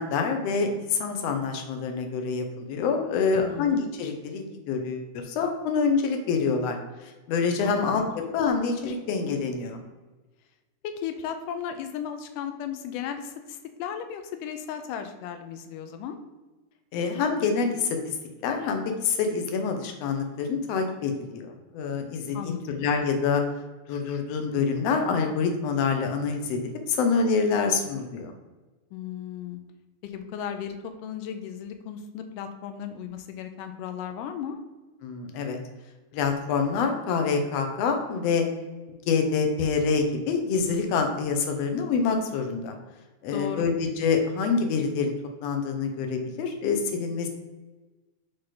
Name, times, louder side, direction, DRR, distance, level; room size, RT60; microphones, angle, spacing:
voice 1, 0.0-9.8 16.9-18.1 18.4-23.4 23.9-28.3 35.0-35.6 36.1-38.4 39.1-42.8 43.2-45.1 45.4-47.3, left 5 dB, 70° left, 5 dB, 1.5 m, -26 dB
voice 2, 3.3-3.9 7.6-7.7 8.0-8.1 10.8-16.2 22.3-22.6 28.9-29.6 30.0-34.6 43.3-43.7, left 8 dB, 90° left, 7 dB, 2.2 m, -35 dB
6.3 x 4.3 x 4.0 m, 1.2 s
omnidirectional pair, 3.7 m